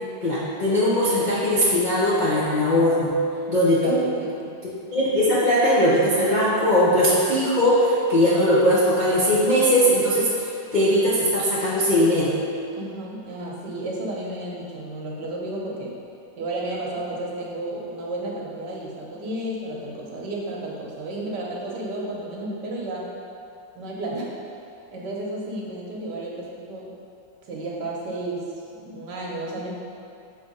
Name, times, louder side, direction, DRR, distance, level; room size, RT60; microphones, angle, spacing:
voice 1, 0.2-3.1 3.5-4.0 4.9-12.3, equal, 45° left, -9 dB, 0.5 m, -20 dB
voice 2, 4.2-4.5 12.7-15.9 16.4-23.1 23.7-24.3 24.9-26.9 27.5-28.5 28.8-29.7, right 1 dB, 65° right, -3 dB, 1.4 m, -32 dB
6.6 x 3.4 x 5.2 m, 2.6 s
omnidirectional pair, 2.2 m